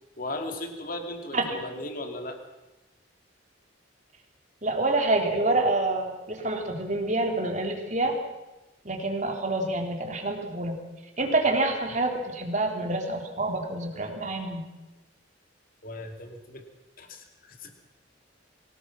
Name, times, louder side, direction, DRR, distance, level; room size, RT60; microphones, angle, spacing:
voice 1, 0.2-2.4 15.8-16.6 17.0-17.7, left 2 dB, 45° left, 4 dB, 2.7 m, -37 dB
voice 2, 4.6-8.2 8.8-10.8 11.2-14.6, right 2 dB, 40° right, 3 dB, 3.2 m, -27 dB
24.0 x 18.0 x 6.1 m, 1.1 s
head